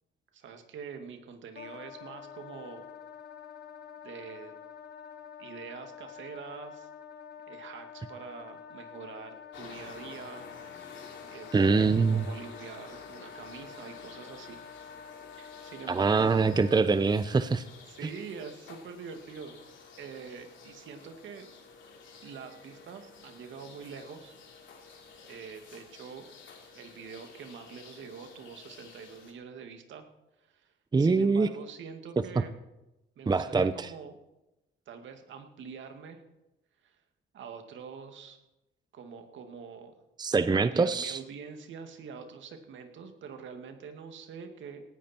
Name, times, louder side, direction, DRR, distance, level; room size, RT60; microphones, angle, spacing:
voice 1, 0.3-2.9 4.0-4.5 5.4-6.9 7.5-10.5 10.7-14.6 15.4-16.6 17.9-19.6 20.0-21.4 22.2-24.3 25.3-26.3 26.7-30.1 30.4-32.5 33.2-34.2 34.9-36.2 36.8-37.0 37.3-38.4 38.9-39.9 40.5-44.8, right 6 dB, 75° right, 6 dB, 2.3 m, -45 dB
Wind instrument woodwind instrument, 1.5-16.8, left 7 dB, 55° left, 1.3 m, -48 dB
sound 1, 9.5-29.3, left 5 dB, 70° left, 3.3 m, -51 dB
voice 2, 11.5-12.2 15.9-17.6 18.0-18.1 30.9-31.5 33.3-33.9 40.2-41.2, right 4 dB, 20° right, 12 dB, 0.7 m, -24 dB
18.0 x 14.5 x 4.5 m, 0.96 s
cardioid pair, 90°, 20 cm